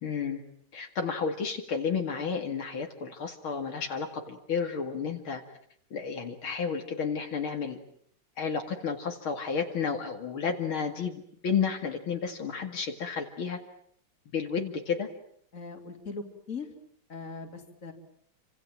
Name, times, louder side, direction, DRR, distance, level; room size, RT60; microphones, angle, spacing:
voice 1, 0.0-0.4 0.7-5.4 5.9-7.8 8.4-13.6 14.3-15.1, left 6 dB, 70° left, 4 dB, 3.0 m, -31 dB
voice 2, 15.5-16.7 17.1-17.9, left 4 dB, 35° left, 4 dB, 3.7 m, -40 dB
29.5 x 26.0 x 7.6 m, 0.65 s
omnidirectional pair, 2.3 m